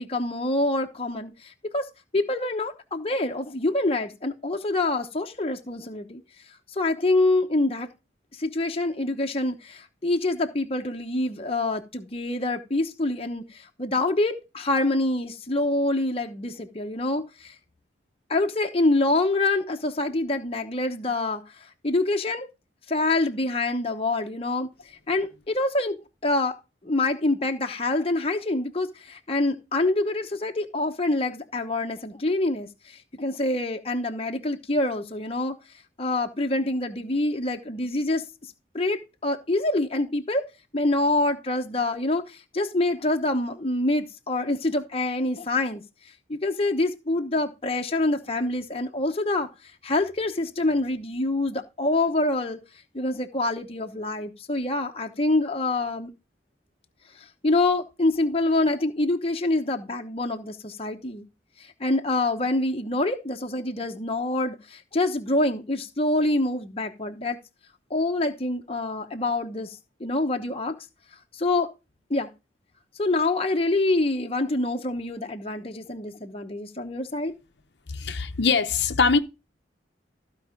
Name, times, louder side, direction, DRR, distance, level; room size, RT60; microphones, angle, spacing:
voice 1, 0.0-1.9 2.1-6.2 6.7-7.9 8.3-17.5 18.3-22.5 22.9-26.0 26.2-26.6 26.8-35.6 36.0-38.2 38.7-40.5 40.7-45.8 46.3-49.5 49.8-52.6 52.9-56.1 57.2-61.3 61.6-67.4 67.9-70.8 71.3-71.7 72.1-72.3 73.0-77.4, left 2 dB, 30° left, 1.0 m, -26 dB
voice 2, 77.9-79.2, left 5 dB, 65° left, 0.9 m, -22 dB
14.5 x 5.0 x 5.1 m
head